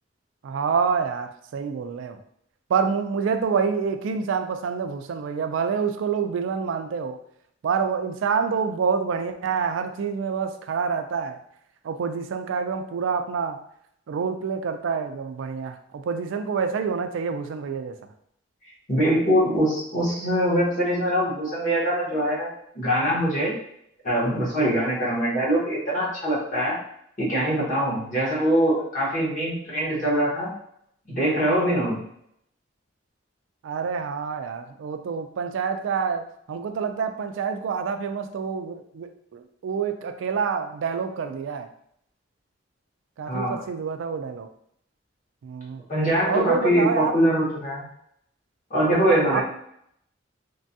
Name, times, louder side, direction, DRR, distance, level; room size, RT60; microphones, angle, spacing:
voice 1, 0.4-2.2 2.7-7.2 7.6-11.4 11.8-13.6 14.1-18.0 33.6-41.7 43.2-44.5 45.4-45.8 46.3-47.2 49.3-49.4, right 6 dB, 85° right, 7 dB, 0.3 m, -27 dB
voice 2, 18.9-23.5 24.0-26.7 27.2-30.5 31.1-32.0 43.3-43.6 45.9-47.8 48.7-49.4, equal, 40° left, -6 dB, 1.2 m, -23 dB
3.3 x 2.2 x 2.6 m, 0.72 s
head